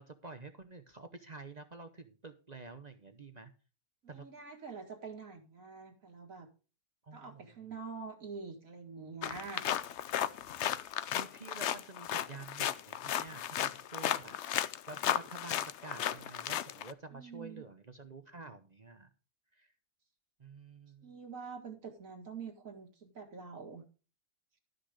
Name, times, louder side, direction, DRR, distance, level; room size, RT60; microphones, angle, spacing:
voice 1, 0.0-3.5 4.1-4.3 7.0-7.6 11.1-14.4 14.9-19.1 19.5-19.7 20.4-21.1, right 3 dB, 35° right, 8 dB, 0.7 m, -49 dB
voice 2, 4.0-6.5 7.1-9.7 17.1-17.7 21.0-23.8, right 5 dB, 60° right, 3 dB, 2.2 m, -46 dB
sound 1, 9.2-16.9, left 11 dB, 60° left, 0.8 m, -35 dB
12.5 x 5.9 x 4.9 m, 0.35 s
omnidirectional pair, 1.6 m